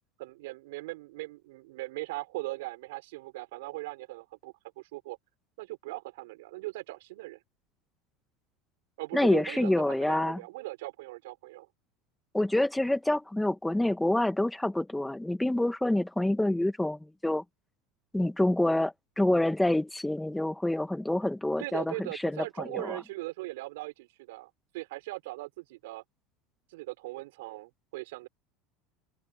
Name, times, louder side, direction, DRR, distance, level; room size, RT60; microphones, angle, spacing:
voice 1, 0.2-5.2 5.6-7.4 9.0-11.7 21.6-26.0 26.7-28.3, right 20 dB, 80° right, 5.8 m, -39 dB
voice 2, 9.1-10.4 12.3-17.4 18.1-23.0, left 1 dB, 5° left, 1.8 m, -27 dB
supercardioid pair, 115°, 0 cm